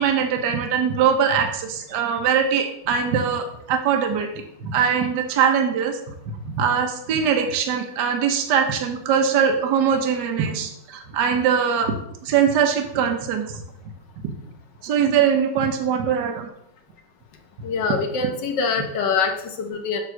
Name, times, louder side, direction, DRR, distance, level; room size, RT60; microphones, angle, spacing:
voice 1, 0.0-6.0 6.4-12.0 12.2-13.6 14.2-14.3 14.8-16.5, right 7 dB, 65° right, 4 dB, 1.3 m, -22 dB
voice 2, 17.6-20.0, left 5 dB, 65° left, 4 dB, 1.5 m, -24 dB
6.8 x 3.6 x 6.0 m, 0.75 s
omnidirectional pair, 2.1 m